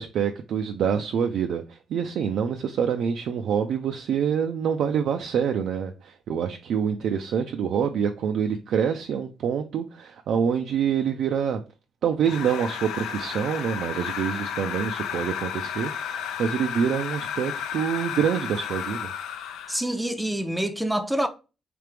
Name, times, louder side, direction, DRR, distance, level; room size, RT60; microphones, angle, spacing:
voice 1, 0.0-11.6 12.0-19.1, right 7 dB, 70° right, 0.3 m, -26 dB
sound 1, 12.2-19.9, left 8 dB, 85° left, 0.4 m, -33 dB
voice 2, 19.7-21.3, right 1 dB, 5° right, 0.5 m, -26 dB
3.3 x 2.9 x 3.2 m
cardioid pair, 90°, 0 cm